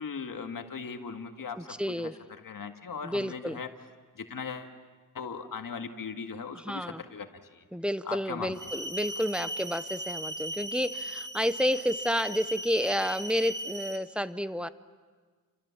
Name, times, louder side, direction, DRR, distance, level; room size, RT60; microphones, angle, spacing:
voice 1, 0.0-2.1 2.4-3.7 4.2-4.7 5.1-7.7 8.0-8.5, left 5 dB, 70° left, 5 dB, 1.9 m, -39 dB
voice 2, 1.6-2.2 3.0-3.6 6.6-7.0 7.7-14.7, equal, 5° right, 13 dB, 0.7 m, -30 dB
sound 1, 8.5-14.0, right 1 dB, 60° right, 2.5 m, -37 dB
29.0 x 26.5 x 7.2 m, 1.5 s
wide cardioid pair, 135°, 34 cm